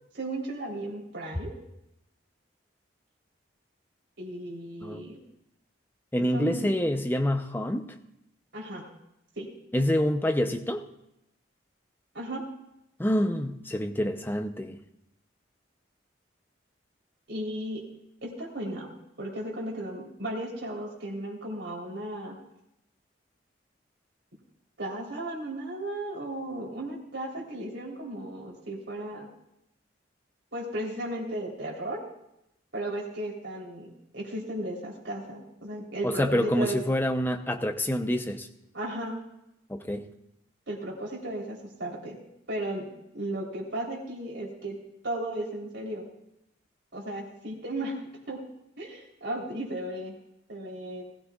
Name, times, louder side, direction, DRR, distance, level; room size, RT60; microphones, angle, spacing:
voice 1, 0.1-1.6 4.2-5.2 6.2-6.7 8.5-8.9 9.4-9.5 12.1-12.4 17.3-17.8 18.2-18.9 19.2-22.4 24.8-29.3 30.5-32.0 32.7-33.9 34.1-36.8 38.7-39.1 40.7-42.2 42.5-42.9 43.1-44.8 45.0-46.1 46.9-48.0 48.3-48.4 48.8-50.1 50.5-51.0, right 1 dB, 70° right, -2 dB, 3.6 m, -35 dB
voice 2, 6.1-7.9 9.7-10.8 13.0-14.8 36.0-38.5 39.7-40.1, left 1 dB, 10° left, 6 dB, 0.6 m, -27 dB
20.0 x 14.5 x 2.4 m, 0.83 s
head